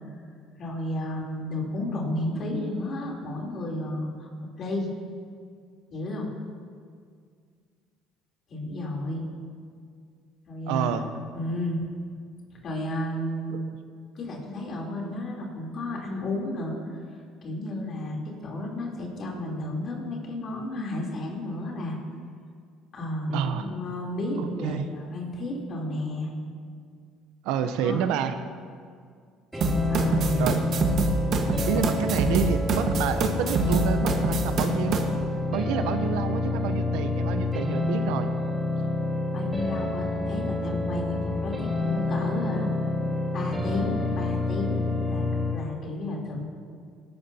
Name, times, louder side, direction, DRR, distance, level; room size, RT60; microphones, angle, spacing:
voice 1, 0.6-4.3 4.6-4.9 5.9-6.3 8.5-9.2 10.5-10.9 11.3-11.8 12.5-13.7 14.2-17.0 17.4-22.0 22.9-26.3 27.8-28.1 29.6-30.6 31.5-31.8 39.3-42.7 43.3-44.8 45.1-45.3 45.5-46.4, left 1 dB, 50° left, -2 dB, 3.5 m, -32 dB
voice 2, 10.7-11.1 13.5-13.6 23.3-23.7 24.4-24.9 27.4-28.4 30.4-30.6 31.7-35.0 35.5-38.3, right 8 dB, 80° right, 9 dB, 0.8 m, -28 dB
sound 1, 29.5-45.5, left 2 dB, 10° right, 1.9 m, -28 dB
sound 2, 29.6-35.0, right 3 dB, 55° right, 1.4 m, -25 dB
19.5 x 12.0 x 2.9 m, 2.1 s
supercardioid pair, 95°, 0 cm